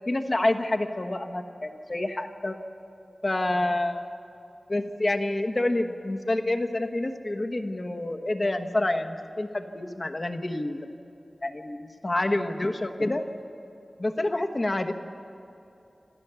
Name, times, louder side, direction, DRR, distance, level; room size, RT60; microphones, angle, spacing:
voice 1, 0.1-2.6 3.2-4.0 4.7-11.0 11.4-13.2 14.0-14.9, left 1 dB, 35° left, 6 dB, 1.2 m, -28 dB
27.5 x 13.5 x 7.0 m, 2.8 s
wide cardioid pair, 80°, 0 cm